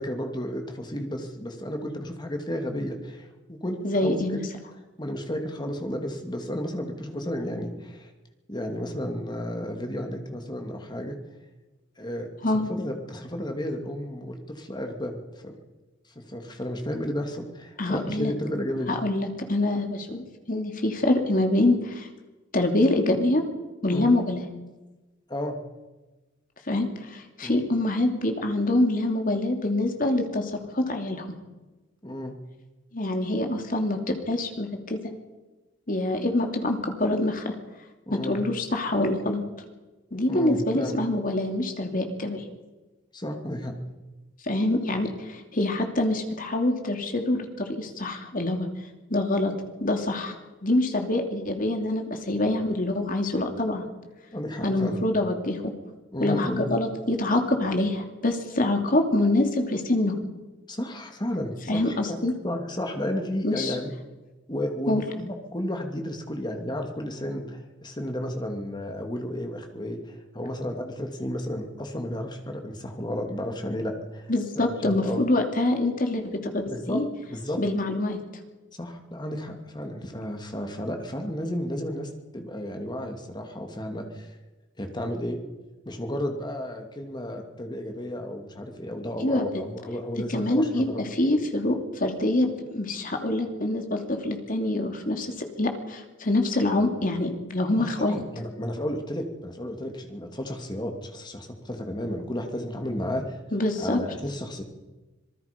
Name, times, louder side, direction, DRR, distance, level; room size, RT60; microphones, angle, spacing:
voice 1, 0.0-4.4 5.0-8.1 8.5-11.2 12.0-15.2 15.4-15.5 16.3-18.9 23.9-24.1 25.3-25.6 27.4-27.6 32.0-32.3 38.1-38.4 40.3-41.0 43.1-43.8 54.3-55.0 56.1-56.7 60.7-62.2 62.4-63.9 64.5-75.2 76.7-77.0 77.3-77.6 78.8-84.3 84.8-85.4 85.9-91.1 97.8-103.2 103.8-104.6, equal, 25° left, 4 dB, 2.7 m, -32 dB
voice 2, 3.8-4.4 12.4-12.7 17.8-18.3 18.9-22.1 22.5-23.4 23.8-24.4 26.7-31.3 32.9-35.0 35.9-37.5 38.1-39.4 40.1-42.4 44.4-48.7 49.1-49.5 49.8-50.4 50.6-53.8 54.6-55.7 56.2-60.1 61.7-62.3 63.4-63.8 64.9-65.0 74.3-77.0 77.6-78.2 89.2-89.4 90.3-98.2 103.5-104.0, left 1 dB, 45° left, 4 dB, 2.9 m, -25 dB
26.0 x 19.5 x 5.4 m, 1.2 s
head